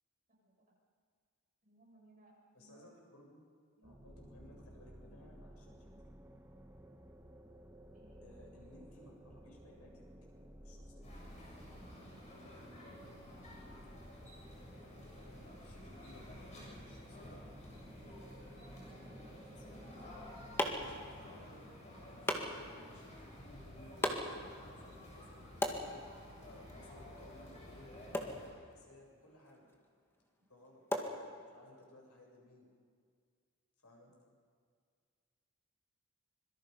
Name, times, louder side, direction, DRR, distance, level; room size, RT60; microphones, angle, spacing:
voice 1, 1.6-2.9 3.8-4.0 7.9-8.3 12.8-13.2 14.9-15.3, right 2 dB, 35° right, -2 dB, 7.5 m, -65 dB
voice 2, 2.5-3.4 3.8-6.1 8.2-10.0 10.6-11.1 14.8-17.4 17.9-19.3 19.6-21.7 22.0-26.0 26.4-29.7 30.4-30.8 31.1-32.7 33.8-34.1, left 1 dB, 90° left, -1 dB, 7.8 m, -60 dB
sound 1, 3.8-21.3, right 1 dB, 10° right, 1.1 m, -55 dB
sound 2, 11.0-28.5, left 1 dB, 30° left, 7.8 m, -53 dB
sound 3, 19.9-31.8, left 1 dB, 10° left, 2.0 m, -42 dB
25.5 x 23.0 x 5.5 m, 2.1 s
head